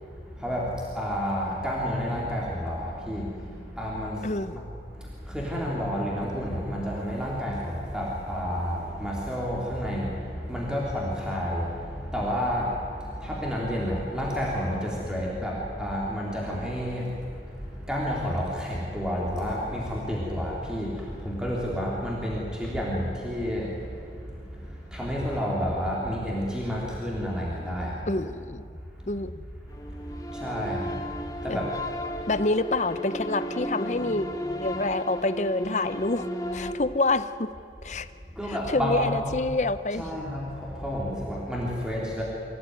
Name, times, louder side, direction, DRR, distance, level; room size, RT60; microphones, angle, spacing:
voice 1, 0.3-4.6 4.9-28.1 29.0-29.2 30.1-31.7 38.3-39.3 39.9-42.2, equal, 5° right, -4 dB, 3.5 m, -30 dB
voice 2, 4.2-4.5 28.1-28.7 29.1-29.4 31.5-31.6 32.3-34.3 34.6-37.5 37.8-38.1 38.5-40.0, left 2 dB, 40° left, 13 dB, 0.8 m, -27 dB
sound 1, 29.7-36.7, equal, 20° left, 1.4 m, -34 dB
25.5 x 16.5 x 9.7 m, 2.5 s
head